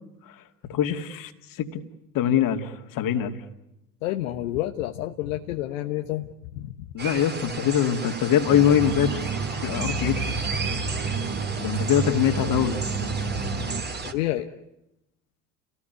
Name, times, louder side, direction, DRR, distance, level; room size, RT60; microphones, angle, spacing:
voice 1, 0.7-1.3 1.6-1.8 2.1-3.4 6.9-9.2 9.6-10.3 11.6-12.8, left 9 dB, 55° left, 7 dB, 2.7 m, -23 dB
voice 2, 4.0-6.7 14.0-14.5, left 14 dB, 75° left, 5 dB, 1.3 m, -29 dB
sound 1, 7.0-14.1, right 4 dB, 25° right, 3.1 m, -34 dB
sound 2, 8.5-13.8, right 4 dB, 50° right, 4.6 m, -30 dB
30.0 x 19.0 x 9.5 m, 0.88 s
hypercardioid pair, 65°, 40 cm